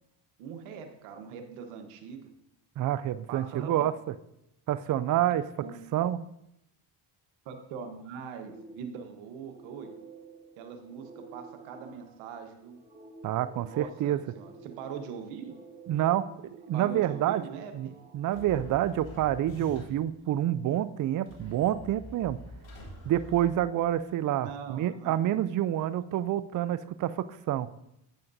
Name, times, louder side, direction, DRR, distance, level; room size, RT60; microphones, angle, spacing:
voice 1, 0.4-2.3 3.3-3.7 5.6-5.7 7.4-9.9 10.6-12.8 13.6-15.6 16.7-18.0 24.4-25.2, right 6 dB, 90° right, 6 dB, 1.2 m, -42 dB
voice 2, 2.8-3.9 4.7-5.4 5.9-6.2 13.2-14.2 15.9-17.4 17.7-22.4 23.1-27.7, right 12 dB, 45° right, 15 dB, 0.4 m, -28 dB
sound 1, 8.4-19.7, right 3 dB, 15° right, 2.9 m, -52 dB
sound 2, 18.3-20.1 21.3-24.1, left 1 dB, 70° left, 3.3 m, -46 dB
11.5 x 8.9 x 2.7 m, 0.81 s
supercardioid pair, 70°, 47 cm